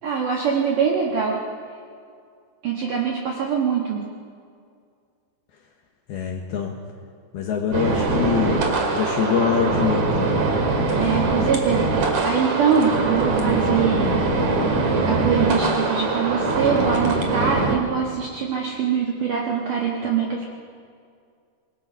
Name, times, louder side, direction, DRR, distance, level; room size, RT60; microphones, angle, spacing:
voice 1, 0.0-1.4 2.6-4.1 11.0-14.2 15.0-20.5, right 6 dB, 70° right, -1 dB, 2.0 m, -23 dB
voice 2, 6.1-6.7 7.3-8.6 8.9-10.3, left 8 dB, 70° left, 2 dB, 2.5 m, -24 dB
sound 1, 7.7-17.8, right 3 dB, 50° right, 2.5 m, -22 dB
26.0 x 20.0 x 5.6 m, 2.2 s
omnidirectional pair, 5.9 m